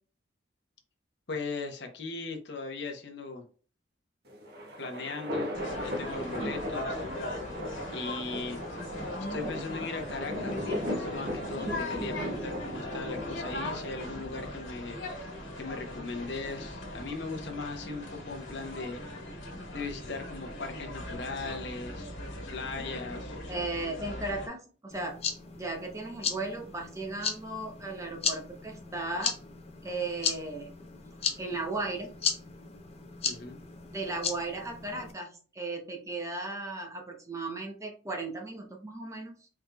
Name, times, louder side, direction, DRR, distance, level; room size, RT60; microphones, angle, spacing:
voice 1, 1.3-3.4 4.8-5.5 5.8-7.1 7.9-8.6 9.3-15.0 15.6-19.0 19.7-23.4 33.2-33.6, left 3 dB, 60° left, 4 dB, 0.9 m, -38 dB
sound 1, 4.3-14.7, equal, 55° right, 1.1 m, -37 dB
sound 2, 5.5-24.5, left 1 dB, 85° left, 1.6 m, -39 dB
voice 2, 23.5-25.2 25.5-29.3 29.8-30.7 31.4-32.1 33.9-39.5, right 2 dB, 15° right, 2 dB, 0.7 m, -36 dB
sound 3, 24.9-35.1, left 6 dB, 30° left, 0.6 m, -36 dB
4.6 x 3.6 x 2.2 m, 0.39 s
head